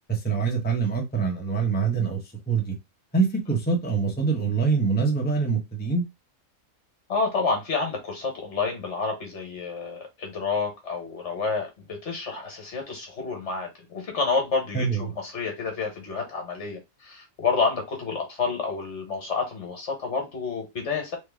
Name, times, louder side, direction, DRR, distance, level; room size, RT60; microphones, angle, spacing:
voice 1, 0.1-2.2 2.5-2.7 3.1-6.0 14.7-15.0, right 5 dB, 10° left, 0.7 m, -24 dB
voice 2, 7.1-21.2, left 4 dB, 55° left, 1.5 m, -29 dB
3.3 x 3.2 x 3.5 m
omnidirectional pair, 1.5 m